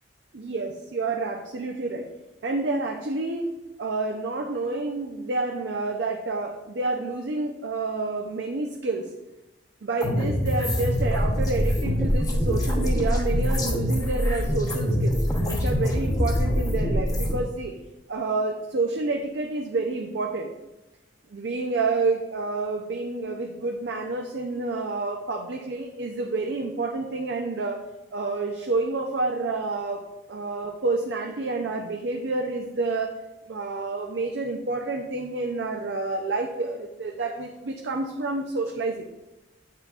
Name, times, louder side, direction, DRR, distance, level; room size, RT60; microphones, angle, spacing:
voice 1, 0.3-2.1 2.4-3.5 3.8-9.1 9.8-15.2 15.5-17.8 18.1-20.5 21.3-27.8 28.1-30.0 30.3-39.1, right 3 dB, 70° right, 3 dB, 0.5 m, -29 dB
sound 1, 10.0-17.4, equal, 20° left, 0.9 m, -24 dB
8.1 x 5.6 x 2.4 m, 1.0 s
head